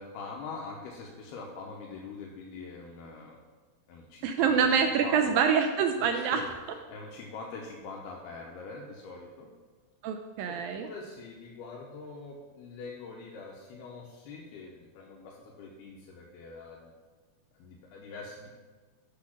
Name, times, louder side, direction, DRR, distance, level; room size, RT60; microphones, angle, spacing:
voice 1, 0.0-3.4 3.9-5.3 6.0-6.5 6.9-9.5 10.5-16.9 17.6-18.5, left 4 dB, 90° left, -1 dB, 2.9 m, -44 dB
voice 2, 4.2-6.4 10.0-10.9, right 6 dB, 80° right, 6 dB, 2.1 m, -26 dB
8.6 x 6.2 x 5.9 m, 1.4 s
omnidirectional pair, 4.4 m